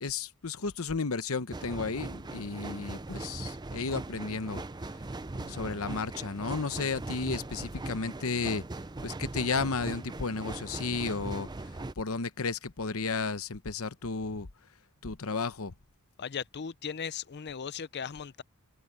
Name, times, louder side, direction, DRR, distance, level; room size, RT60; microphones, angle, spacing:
voice 1, 0.0-4.6 5.3-8.6 9.0-14.5 15.0-15.7, left 4 dB, 65° left, 1.0 m, -33 dB
sound 1, 1.5-11.9, right 2 dB, 20° right, 0.5 m, -40 dB
voice 2, 16.2-18.4, left 7 dB, 50° left, 0.5 m, -37 dB
open air
head